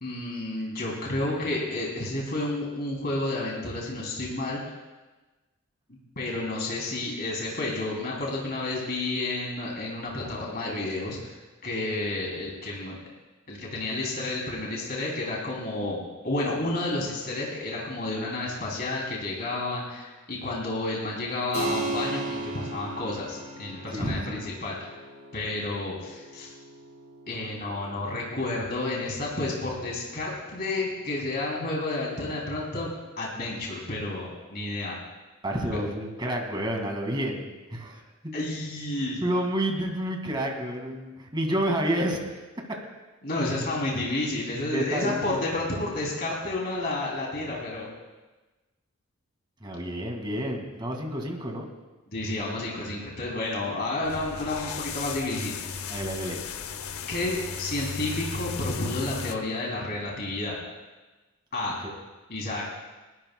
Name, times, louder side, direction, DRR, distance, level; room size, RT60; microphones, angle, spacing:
voice 1, 0.0-4.6 6.2-11.3 11.6-12.9 13.5-16.0 16.2-24.9 25.3-26.5 27.3-32.9 33.2-35.0 38.3-39.2 43.2-47.9 52.1-55.7 57.1-60.6 61.5-61.8 62.3-62.7, left 2 dB, 45° left, -3 dB, 3.0 m, -31 dB
Keyboard (musical), 21.5-31.7, right 2 dB, 40° right, 5.8 m, -38 dB
voice 2, 23.9-24.4 35.4-38.0 39.2-42.2 44.7-45.4 49.6-51.7 55.9-56.4, right 1 dB, 20° right, 2 dB, 2.0 m, -29 dB
sound 1, 54.0-59.4, left 6 dB, 75° left, 0.7 m, -35 dB
30.0 x 12.5 x 2.3 m, 1.2 s
head